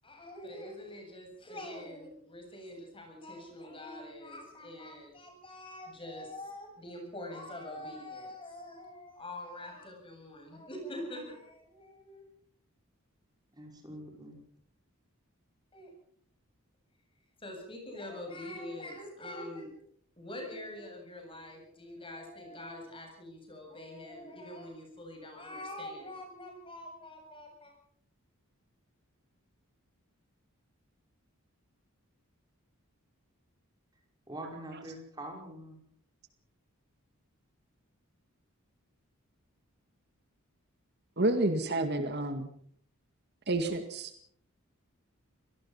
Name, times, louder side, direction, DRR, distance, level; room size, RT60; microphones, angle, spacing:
voice 1, 0.0-12.3 15.7-15.9 17.4-19.7 20.2-27.7, left 1 dB, 25° left, 2 dB, 7.8 m, -44 dB
voice 2, 13.5-14.4 34.3-35.8, right 1 dB, 20° right, 1 dB, 5.6 m, -44 dB
voice 3, 41.2-42.5 43.5-44.1, right 2 dB, 50° right, 7 dB, 2.1 m, -29 dB
26.5 x 18.0 x 5.7 m, 0.64 s
head